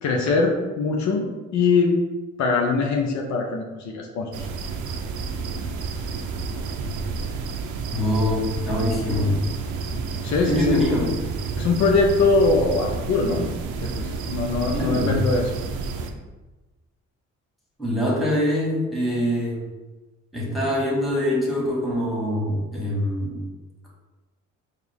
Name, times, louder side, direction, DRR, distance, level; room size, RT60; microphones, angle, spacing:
voice 1, 0.0-2.0 2.4-4.5 10.2-10.8 11.6-13.5 13.8-15.5, left 4 dB, 65° left, 1 dB, 0.6 m, -22 dB
sound 1, 4.3-16.1, right 4 dB, 80° right, 0.5 m, -30 dB
voice 2, 7.9-9.4 10.5-11.1 14.7-15.2 17.8-19.6 20.3-23.4, left 1 dB, ahead, -5 dB, 1.5 m, -24 dB
4.3 x 2.5 x 3.4 m, 1.2 s
cardioid pair, 90°, 30 cm